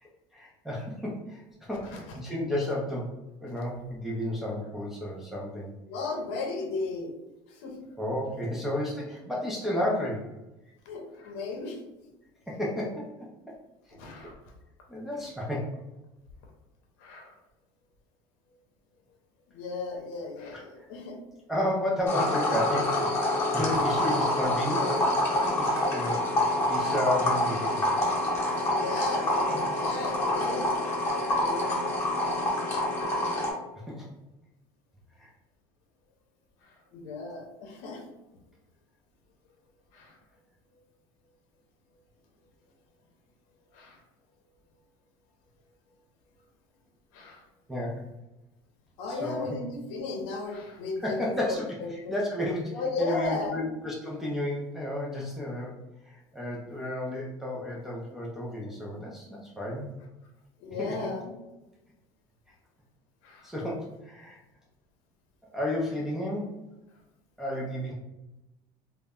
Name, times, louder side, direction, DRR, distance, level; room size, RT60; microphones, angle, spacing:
voice 1, 0.0-3.1 3.4-5.7 8.0-10.3 12.5-13.5 13.9-14.3 14.9-15.8 20.5-20.6 21.5-26.3 26.7-27.9 33.9-34.1 35.2-35.3 47.7-48.0 49.1-49.6 51.0-55.7 56.0-59.9 60.8-61.1 63.4-64.4 65.5-66.6 67.4-67.9, left 1 dB, 5° right, -5 dB, 0.3 m, -32 dB
voice 2, 5.9-7.1 7.5-7.8 10.9-11.8 14.0-14.4 17.0-17.3 19.5-21.2 23.6-23.8 28.7-30.7 31.0-31.9 36.9-38.0 39.9-40.2 43.7-44.0 47.1-47.4 49.0-52.2 52.7-53.6 60.6-61.3 63.2-63.5, left 3 dB, 75° left, 1 dB, 0.6 m, -35 dB
sound 1, 22.1-33.5, left 1 dB, 20° left, 0.7 m, -27 dB
2.0 x 2.0 x 3.4 m, 1.0 s
cardioid pair, 145°, 11 cm